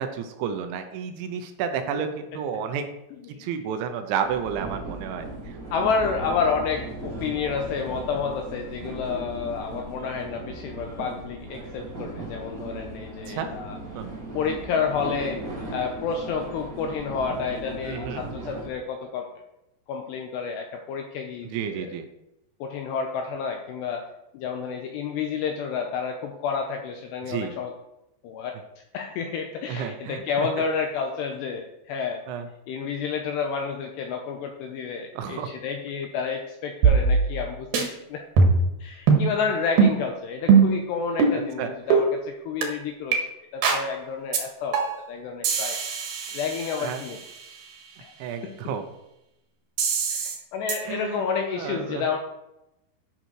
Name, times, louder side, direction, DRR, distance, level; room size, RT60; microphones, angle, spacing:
voice 1, 0.0-2.9 3.3-5.6 13.3-13.5 13.9-14.1 17.8-18.2 21.5-22.1 27.3-27.5 29.7-30.2 32.3-32.5 35.2-35.5 41.3-41.7 46.8-47.0 48.2-48.8 50.9-51.2 51.5-52.0, right 7 dB, 80° right, 7 dB, 3.0 m, -31 dB
sound 1, 4.2-18.7, right 2 dB, 35° right, 1.3 m, -37 dB
voice 2, 5.7-13.8 14.3-19.3 19.9-22.0 22.6-24.1 24.3-27.7 28.2-28.6 28.9-32.2 32.7-38.3 38.8-43.2 43.5-45.8 46.3-47.6 48.0-48.1 48.4-48.7 50.1-52.2, left 6 dB, 85° left, 3 dB, 2.5 m, -30 dB
sound 2, 36.8-37.5 37.7-37.9 38.4-38.7 39.1-39.3 39.8-40.0 40.5-40.8 41.2-41.4 41.9-42.0 42.6-42.7 43.1-43.2 43.6-43.9 44.3-44.4 44.7-45.1 45.4-47.3 49.8-50.4 50.7-50.8, right 5 dB, 60° right, 3.0 m, -21 dB
12.0 x 6.3 x 4.7 m, 0.88 s
omnidirectional pair, 5.7 m